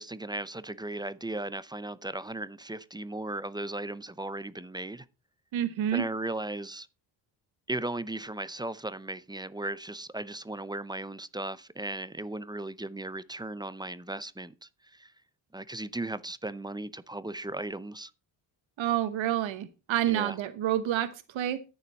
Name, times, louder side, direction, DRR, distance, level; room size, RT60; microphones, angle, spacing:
voice 1, 0.0-5.1 5.9-6.9 7.7-15.1 15.5-18.1 20.1-20.4, right 2 dB, 10° right, 0.6 m, -36 dB
voice 2, 5.5-6.0 18.8-21.6, right 11 dB, 80° right, 1.2 m, -28 dB
14.0 x 7.0 x 4.2 m
cardioid pair, 115°, 46 cm